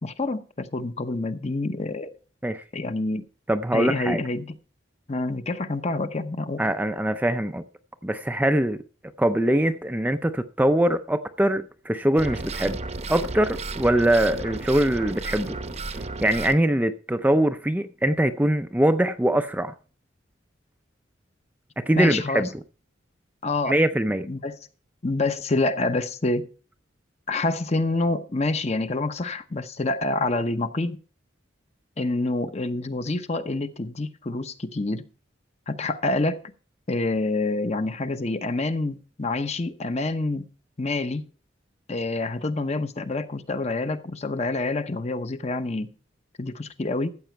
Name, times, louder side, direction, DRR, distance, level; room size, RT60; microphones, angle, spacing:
voice 1, 0.0-2.2 2.7-3.2 3.7-4.6 5.1-6.6 22.0-22.5 23.4-23.8 24.2-24.6 25.0-26.5 27.3-31.0 32.0-35.1 35.7-36.4 36.9-40.5 40.8-41.2 41.9-45.9 46.4-47.1, left 2 dB, 35° left, 0.8 m, -27 dB
voice 2, 3.5-4.2 6.6-7.6 8.0-8.8 9.2-12.8 13.1-15.6 16.2-19.7 21.8-22.5 23.7-24.3, right 1 dB, 10° right, 0.4 m, -22 dB
sound 1, 12.2-16.6, right 3 dB, 35° right, 0.8 m, -33 dB
14.5 x 8.1 x 4.5 m
head